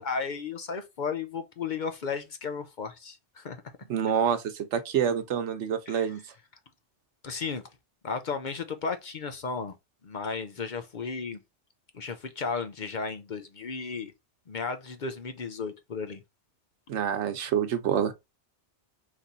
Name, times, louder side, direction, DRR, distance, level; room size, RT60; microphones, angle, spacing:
voice 1, 0.0-3.6 5.9-6.1 7.2-7.6 8.0-9.7 10.0-11.4 11.9-14.1 14.5-16.2, left 5 dB, 50° left, 0.7 m, -34 dB
voice 2, 3.9-6.2 16.9-18.1, right 8 dB, 85° right, 1.1 m, -27 dB
4.2 x 3.0 x 3.9 m
omnidirectional pair, 1.2 m